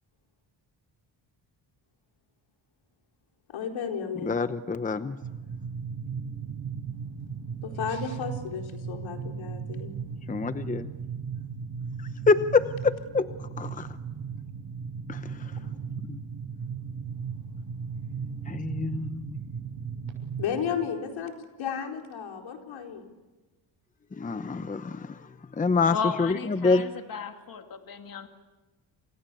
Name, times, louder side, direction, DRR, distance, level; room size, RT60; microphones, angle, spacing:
voice 1, 3.5-4.3 7.6-9.9 20.4-21.3 21.6-23.0, left 7 dB, 80° left, 3 dB, 4.4 m, -33 dB
voice 2, 4.2-5.2 10.3-10.9 12.3-13.9 15.1-15.6 16.1-16.2 18.5-19.4 24.1-26.8, left 4 dB, 15° left, 11 dB, 0.8 m, -26 dB
sound 1, 5.2-20.4, right 6 dB, 60° right, 7.1 m, -36 dB
voice 3, 25.9-28.3, left 6 dB, 45° left, 5 dB, 2.4 m, -34 dB
29.0 x 27.5 x 7.0 m, 1.2 s
cardioid pair, 125°, 46 cm